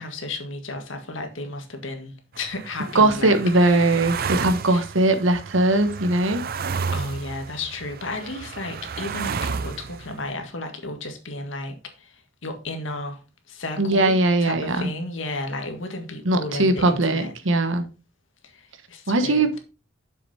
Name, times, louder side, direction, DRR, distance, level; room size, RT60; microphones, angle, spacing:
voice 1, 0.0-4.0 4.6-4.8 6.9-13.2 13.5-17.3 18.4-19.6, left 2 dB, 70° left, 1.8 m, -33 dB
sound 1, 2.4-10.3, right 5 dB, 45° right, 0.5 m, -32 dB
voice 2, 2.9-6.4 13.8-14.9 16.2-17.8 19.1-19.5, right 2 dB, 75° right, 1.1 m, -20 dB
6.8 x 6.5 x 4.2 m
head